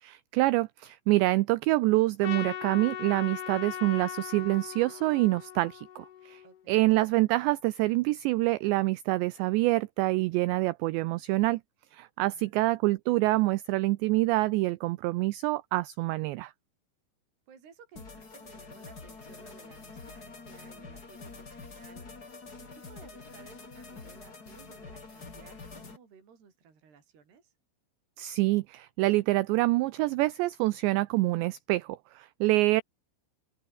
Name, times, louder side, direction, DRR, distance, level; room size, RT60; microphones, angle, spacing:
voice 1, 0.0-6.4 6.7-11.6 11.9-16.5 28.2-32.8, right 19 dB, 90° right, 2.5 m, -26 dB
Trumpet, 2.2-6.6, left 10 dB, 60° left, 3.7 m, -39 dB
voice 2, 6.4-6.9 12.2-12.7 17.5-22.1 22.6-27.5 32.5-32.7, right 6 dB, 55° right, 7.4 m, -57 dB
sound 1, 17.9-26.0, left 4 dB, 25° left, 2.9 m, -46 dB
open air
omnidirectional pair, 5.8 m